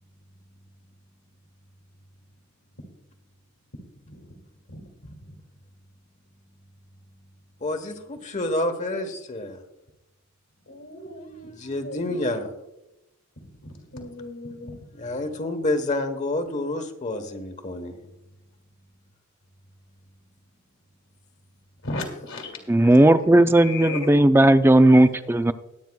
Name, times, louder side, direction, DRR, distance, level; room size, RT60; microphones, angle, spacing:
voice 1, 4.0-4.4 4.7-5.3 6.4-6.6 7.1-7.3 10.7-11.5 11.8-12.2 13.4-15.1 17.9-18.0 21.8-23.0 23.3-24.1 24.9-25.1, left 2 dB, 75° left, 0 dB, 2.3 m, -38 dB
voice 2, 7.6-9.6 11.4-12.5 14.9-18.0, left 1 dB, 35° left, 7 dB, 1.1 m, -28 dB
voice 3, 22.7-25.5, right 1 dB, 10° right, 11 dB, 0.4 m, -16 dB
21.5 x 9.1 x 2.3 m, 0.91 s
head